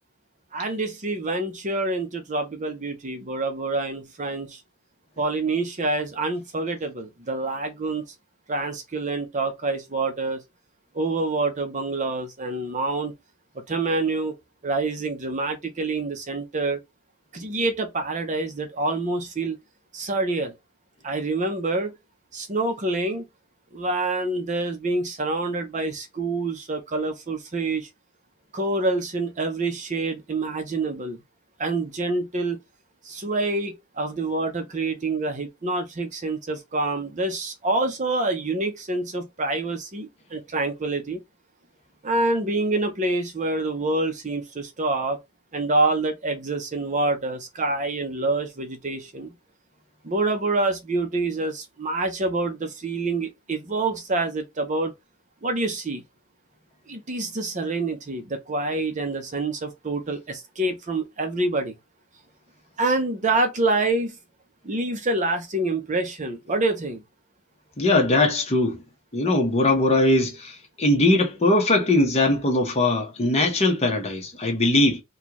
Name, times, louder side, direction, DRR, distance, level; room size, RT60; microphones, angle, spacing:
voice 1, 0.5-4.6 5.2-8.0 8.5-10.4 10.9-13.1 13.7-14.3 14.6-16.8 17.3-19.6 19.9-20.5 21.0-21.9 22.3-23.2 23.7-27.9 28.5-31.2 31.6-32.6 33.0-41.2 42.0-45.2 45.5-49.3 50.0-54.9 55.4-56.0 56.9-61.8 62.8-64.2 64.6-67.0, right 2 dB, 35° right, 0.7 m, -26 dB
voice 2, 67.8-68.8 69.1-75.0, left 2 dB, 30° left, 1.0 m, -20 dB
4.3 x 2.3 x 3.0 m
head